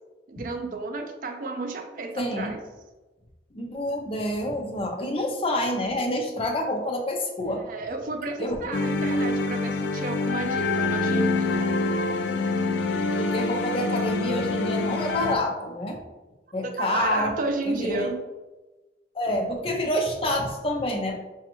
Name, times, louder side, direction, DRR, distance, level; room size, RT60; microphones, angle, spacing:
voice 1, 0.3-2.6 7.6-11.7 16.6-18.2, right 3 dB, 50° right, 5 dB, 0.4 m, -32 dB
voice 2, 2.2-2.5 3.5-7.6 8.4-8.7 13.2-16.0 16.5-17.3 17.6-18.0 19.1-21.2, left 1 dB, 30° left, 2 dB, 0.5 m, -28 dB
sound 1, 8.7-15.4, left 3 dB, 85° left, 0.3 m, -26 dB
5.0 x 2.3 x 2.9 m, 1.1 s
head